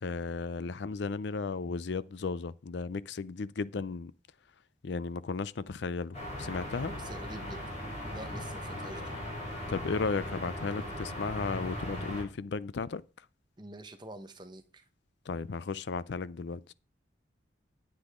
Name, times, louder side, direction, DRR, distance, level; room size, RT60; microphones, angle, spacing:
voice 1, 0.0-4.1 4.8-6.9 9.7-13.0 15.3-16.7, left 4 dB, 65° left, 0.5 m, -35 dB
sound 1, 6.1-12.2, left 1 dB, 35° left, 4.7 m, -38 dB
voice 2, 6.8-7.7 8.1-9.1 13.6-14.6, right 1 dB, 25° right, 1.1 m, -46 dB
9.8 x 9.7 x 3.7 m
head